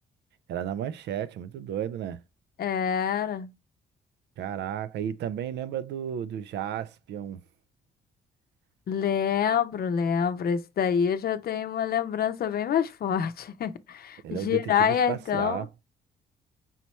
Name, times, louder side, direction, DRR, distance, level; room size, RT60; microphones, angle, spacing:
voice 1, 0.5-2.2 4.4-7.4 14.2-15.7, right 9 dB, 70° right, 0.4 m, -33 dB
voice 2, 2.6-3.5 8.9-15.6, left 8 dB, 60° left, 0.6 m, -26 dB
5.6 x 3.0 x 3.1 m
supercardioid pair, 65°, 18 cm